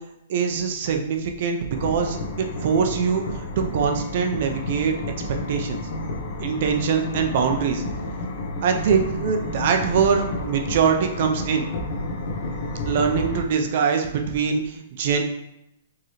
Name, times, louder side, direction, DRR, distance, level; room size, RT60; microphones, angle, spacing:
voice 1, 0.3-4.9 5.5-5.8 6.4-7.8 8.6-11.7 12.9-15.2, right 6 dB, 50° right, 4 dB, 0.6 m, -23 dB
sound 1, 1.7-13.4, left 2 dB, 55° left, 0.8 m, -31 dB
4.7 x 3.1 x 3.1 m, 0.84 s
hypercardioid pair, 155°, 0 cm